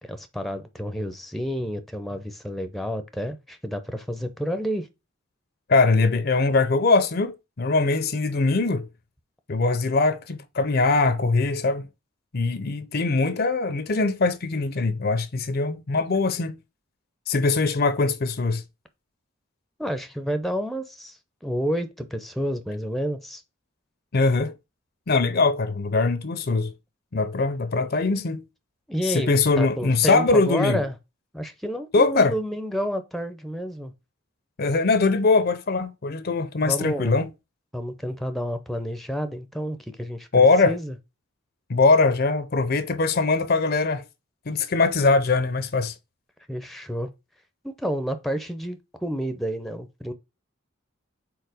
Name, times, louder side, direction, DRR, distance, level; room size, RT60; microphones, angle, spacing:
voice 1, 0.0-4.9 19.8-23.4 28.9-30.9 31.3-33.9 36.6-37.1 37.7-40.9 46.5-47.1 47.6-50.1, equal, ahead, 0.6 m, -30 dB
voice 2, 5.7-8.9 9.5-11.9 12.3-16.6 17.3-18.6 24.1-24.5 25.1-26.7 27.1-28.4 29.0-30.8 31.9-32.3 34.6-37.3 40.3-40.7 41.7-44.0 44.5-45.9, left 3 dB, 50° left, 0.6 m, -22 dB
4.7 x 4.2 x 4.9 m
head